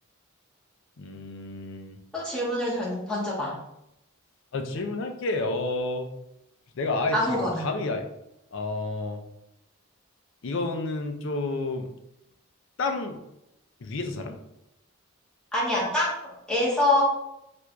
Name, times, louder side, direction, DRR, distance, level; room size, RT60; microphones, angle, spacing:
voice 1, 1.0-2.0 4.5-6.1 6.8-8.1 8.5-9.2 10.4-11.9 12.8-13.2 13.8-14.3, left 2 dB, 60° left, 5 dB, 0.5 m, -30 dB
voice 2, 2.1-3.5 7.1-7.6 15.5-17.0, left 1 dB, 5° left, -7 dB, 1.0 m, -25 dB
4.4 x 2.5 x 2.2 m, 0.84 s
head